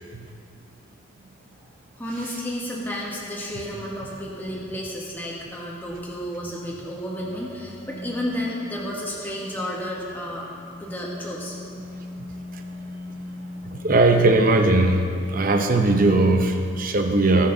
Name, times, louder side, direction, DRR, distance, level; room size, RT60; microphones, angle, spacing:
voice 1, 2.0-10.5 10.8-11.5, equal, 10° left, -3 dB, 1.4 m, -32 dB
sound 1, 5.8-15.3, left 1 dB, 30° left, 2.1 m, -41 dB
voice 2, 13.6-17.5, right 2 dB, 40° right, 4 dB, 0.8 m, -19 dB
18.0 x 6.6 x 3.9 m, 2.4 s
head